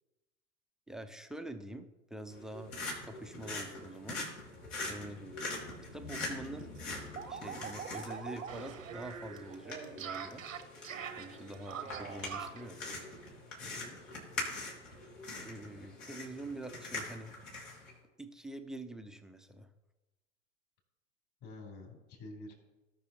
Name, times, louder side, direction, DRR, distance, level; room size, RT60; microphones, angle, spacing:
voice 1, 0.9-2.7 3.1-4.3 4.9-5.3 5.9-6.7 7.3-10.4 11.2-12.8 15.4-17.3 18.2-19.7, right 1 dB, ahead, 6 dB, 0.5 m, -45 dB
sound 1, 2.3-17.9, left 2 dB, 70° left, 3.3 m, -43 dB
voice 2, 4.9-5.3 13.6-14.0 21.4-22.5, left 2 dB, 40° left, 1 dB, 3.6 m, -49 dB
sound 2, 5.7-5.8 6.1-6.2 6.5-12.7, right 7 dB, 80° right, 1.0 m, -44 dB
18.0 x 6.1 x 2.9 m, 1.1 s
figure-of-eight pair, 85°, 39 cm